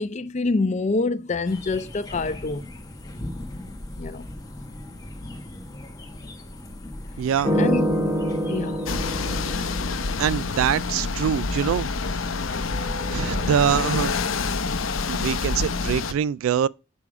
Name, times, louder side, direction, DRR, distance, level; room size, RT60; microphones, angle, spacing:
voice 1, 0.0-2.6 4.0-4.3 7.6-7.9 8.5-8.8, left 3 dB, 35° left, 0.5 m, -26 dB
sound 1, 1.4-9.8, left 1 dB, 20° left, 1.0 m, -39 dB
voice 2, 7.2-7.6 10.2-11.9 13.1-14.1 15.1-16.7, right 8 dB, 80° right, 0.3 m, -24 dB
sound 2, 7.4-10.5 12.3-14.0, equal, 15° right, 1.2 m, -27 dB
sound 3, 8.9-16.1, left 4 dB, 75° left, 0.7 m, -27 dB
6.8 x 5.1 x 4.7 m
head